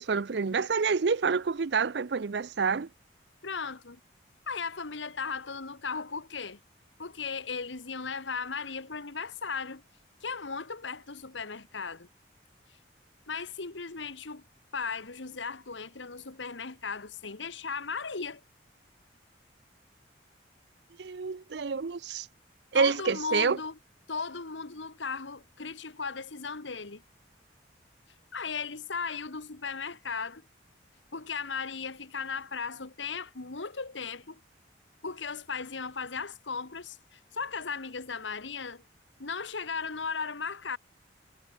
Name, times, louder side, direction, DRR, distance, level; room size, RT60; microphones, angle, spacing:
voice 1, 0.0-2.9 21.0-22.3 22.7-23.6, right 5 dB, 70° right, 0.5 m, -28 dB
voice 2, 3.4-4.0 4.5-6.6 7.0-9.8 10.2-12.1 13.3-14.4 14.7-18.4 22.7-23.8 24.1-27.0 28.3-30.4 31.1-34.4 35.0-38.8 39.2-40.8, left 5 dB, 85° left, 1.6 m, -36 dB
head